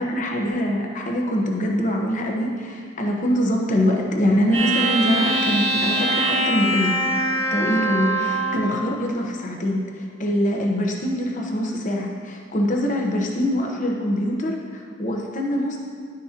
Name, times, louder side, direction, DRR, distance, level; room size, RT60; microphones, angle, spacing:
voice 1, 0.0-6.9 7.5-15.8, equal, 45° left, 0 dB, 1.1 m, -23 dB
sound 1, 4.5-8.7, right 1 dB, 85° right, 1.8 m, -23 dB
11.5 x 6.2 x 3.0 m, 2.3 s
head